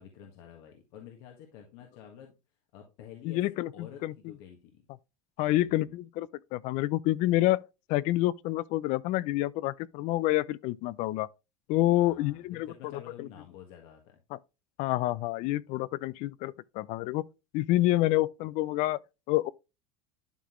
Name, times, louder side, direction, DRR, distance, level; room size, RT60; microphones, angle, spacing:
voice 1, 0.0-2.3 2.7-4.8 5.4-6.0 12.0-14.2, left 9 dB, 65° left, 1.6 m, -50 dB
voice 2, 3.2-4.1 5.4-11.3 11.7-13.3 14.3-14.4 14.8-17.2 17.5-19.0 19.3-19.5, left 16 dB, 50° left, 0.4 m, -28 dB
11.5 x 4.0 x 3.0 m
supercardioid pair, 135°, 16 cm